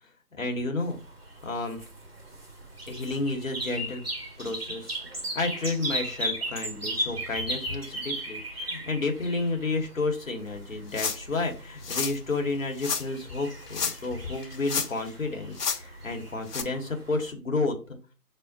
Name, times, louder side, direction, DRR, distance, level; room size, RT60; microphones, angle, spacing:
voice 1, 0.4-1.0 1.4-1.8 2.9-4.0 4.4-5.0 5.3-15.5 15.8-18.0, left 3 dB, 55° left, 3 dB, 0.9 m, -31 dB
sound 1, 0.8-17.3, right 1 dB, 40° right, 0.7 m, -37 dB
sound 2, 10.9-11.3 11.8-12.2 12.8-13.0 13.7-14.1 14.4-15.1 15.5-15.8 16.5-16.6, left 5 dB, 80° left, 0.7 m, -30 dB
5.8 x 2.0 x 2.6 m, 0.35 s
figure-of-eight pair, 160°, 47 cm